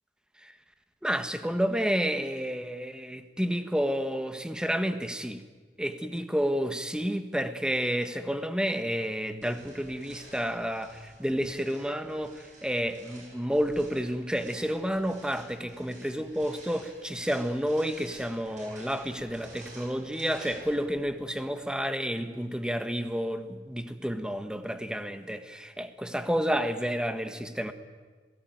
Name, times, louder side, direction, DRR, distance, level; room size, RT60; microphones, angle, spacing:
voice 1, 1.0-5.4 5.8-27.7, equal, 5° right, 1.5 m, -30 dB
sound 1, 9.4-21.3, right 2 dB, 45° right, 7.8 m, -51 dB
27.5 x 18.0 x 9.3 m
head